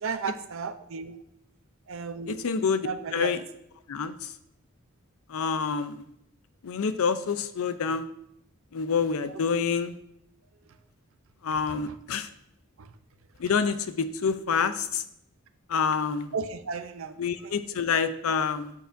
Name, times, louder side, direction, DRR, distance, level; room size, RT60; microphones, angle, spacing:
voice 1, 0.0-1.1 1.9-2.4 2.8-3.3 16.3-17.2 17.4-17.5, right 5 dB, 65° right, 10 dB, 0.5 m, -33 dB
voice 2, 2.3-3.4 3.9-4.3 5.3-6.0 6.6-8.1 8.7-10.0 11.4-12.3 13.4-15.0 15.7-16.3 17.2-18.7, left 5 dB, 75° left, 12 dB, 0.5 m, -27 dB
7.8 x 6.6 x 2.5 m, 0.74 s
head